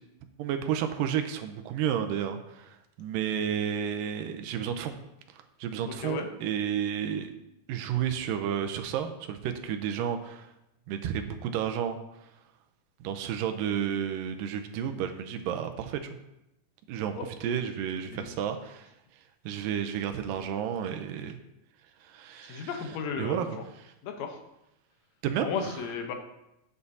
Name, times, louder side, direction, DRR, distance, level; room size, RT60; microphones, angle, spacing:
voice 1, 0.4-4.9 5.3-7.3 7.7-10.5 10.9-12.0 13.0-16.0 16.9-17.1 17.4-18.9 19.5-21.4 22.0-23.9 25.2-25.8, right 9 dB, 85° right, 7 dB, 2.3 m, -32 dB
voice 2, 22.5-23.4 24.0-24.4 25.4-26.1, left 6 dB, 70° left, 4 dB, 1.7 m, -33 dB
9.9 x 8.3 x 2.7 m, 0.88 s
omnidirectional pair, 4.0 m